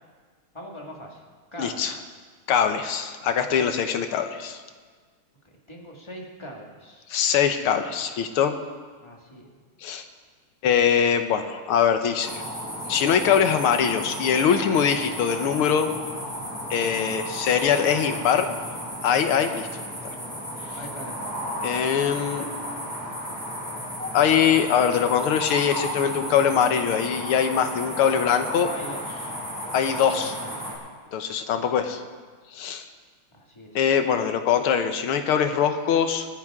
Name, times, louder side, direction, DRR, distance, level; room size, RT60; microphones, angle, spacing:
voice 1, 0.5-1.2 1.5-2.1 3.6-3.7 5.4-7.1 9.0-9.5 15.3-15.4 17.7-18.5 20.8-21.4 28.5-29.3 30.0-30.9 31.7-31.8 33.3-33.8, equal, 15° left, -1 dB, 1.9 m, -41 dB
voice 2, 1.6-1.9 2.5-4.6 7.1-8.6 9.8-10.0 10.6-12.4 12.9-15.9 16.7-18.5 19.0-19.7 21.6-22.5 24.1-28.7 29.7-30.3 31.1-32.0 32.5-32.9 33.8-36.3, left 8 dB, 80° left, 7 dB, 1.9 m, -22 dB
sound 1, 12.2-30.8, equal, 10° right, 5.2 m, -34 dB
26.0 x 9.8 x 3.7 m, 1.5 s
omnidirectional pair, 2.4 m